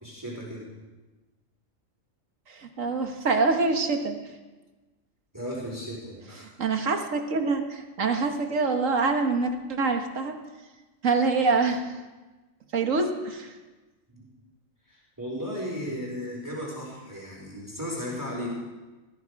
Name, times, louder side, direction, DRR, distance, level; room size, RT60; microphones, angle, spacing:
voice 1, 0.0-0.7 5.3-6.5 14.1-14.3 14.9-18.5, equal, 15° right, -3 dB, 4.4 m, -35 dB
voice 2, 2.5-4.2 6.6-10.4 11.0-12.0 12.7-13.5, right 4 dB, 70° right, 5 dB, 1.8 m, -25 dB
20.0 x 14.5 x 4.8 m, 1.2 s
omnidirectional pair, 1.4 m